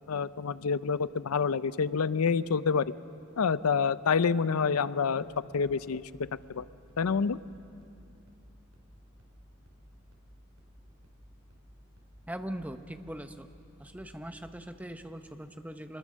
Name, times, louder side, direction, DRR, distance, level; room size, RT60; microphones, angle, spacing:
voice 1, 0.1-2.9 3.4-5.3 5.5-6.0 6.5-6.6 7.0-7.4, left 5 dB, 85° left, 16 dB, 0.5 m, -27 dB
sound 1, 5.2-14.7, equal, 90° right, 4.5 m, -57 dB
voice 2, 12.3-13.5 13.8-16.0, right 1 dB, 5° right, 8 dB, 0.7 m, -41 dB
26.0 x 21.0 x 6.4 m, 2.6 s
head